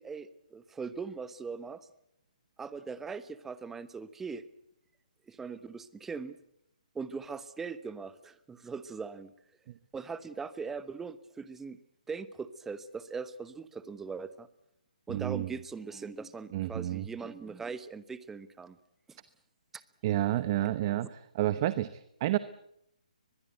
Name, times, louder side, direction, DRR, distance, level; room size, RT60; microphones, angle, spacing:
voice 1, 0.0-1.9 2.6-4.4 5.3-6.4 6.9-9.3 9.9-11.8 12.1-14.5 15.1-18.8 19.1-19.2, right 5 dB, 5° right, 14 dB, 1.0 m, -40 dB
voice 2, 15.1-15.6 16.5-17.1 20.0-22.4, right 14 dB, 30° right, 14 dB, 0.9 m, -30 dB
23.0 x 21.5 x 8.1 m, 0.79 s
hypercardioid pair, 155°, 4 cm